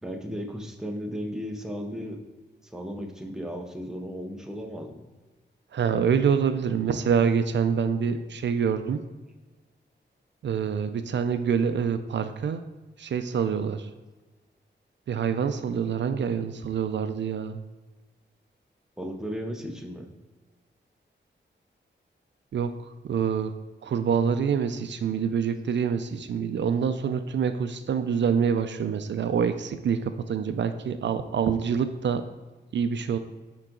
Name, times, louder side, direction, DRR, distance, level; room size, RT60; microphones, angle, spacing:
voice 1, 0.0-2.2 2.6-5.0 19.0-20.1, equal, 5° right, 3 dB, 0.7 m, -35 dB
voice 2, 5.7-9.0 10.4-12.6 13.0-13.9 15.1-17.6 22.5-22.7 23.0-23.5 23.8-32.2 32.7-33.2, right 7 dB, 70° right, 9 dB, 0.4 m, -26 dB
9.1 x 3.9 x 3.8 m, 1.2 s
wide cardioid pair, 150°, 19 cm